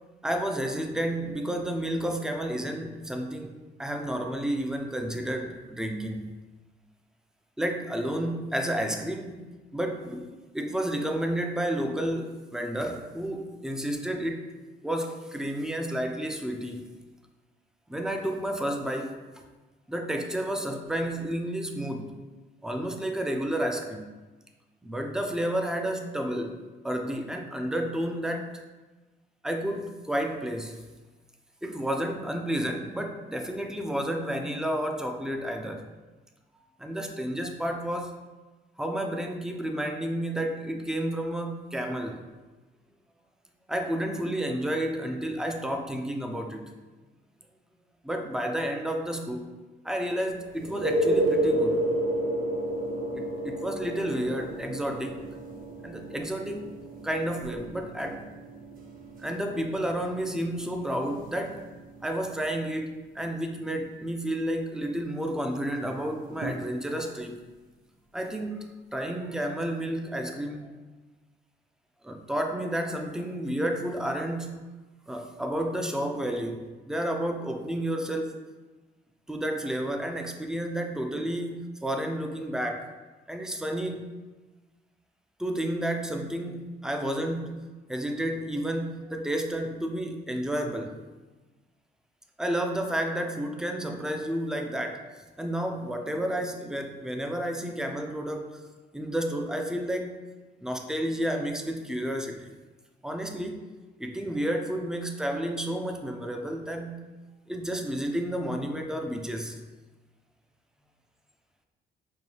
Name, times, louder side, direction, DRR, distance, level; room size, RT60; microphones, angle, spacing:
voice 1, 0.2-6.4 7.6-10.3 10.5-14.5 14.8-16.8 17.9-19.4 19.9-22.2 22.6-24.1 24.8-28.6 29.4-30.8 31.6-35.9 36.8-38.2 38.8-42.2 43.7-46.7 48.0-49.6 49.8-51.8 53.1-55.2 55.8-56.7 57.0-58.2 59.2-61.7 62.0-67.4 68.1-70.7 72.0-74.7 75.1-78.4 79.3-82.9 83.3-84.1 85.4-91.0 92.4-95.0 95.4-98.6 98.9-100.2 100.6-102.5 103.0-103.6 104.0-107.0 107.5-109.6, right 1 dB, 5° right, 4 dB, 0.4 m, -31 dB
sound 1, 50.6-62.1 66.4-66.5, right 1 dB, 45° right, 0.7 m, -31 dB
5.3 x 2.2 x 3.2 m, 1.2 s
cardioid pair, 90°, 20 cm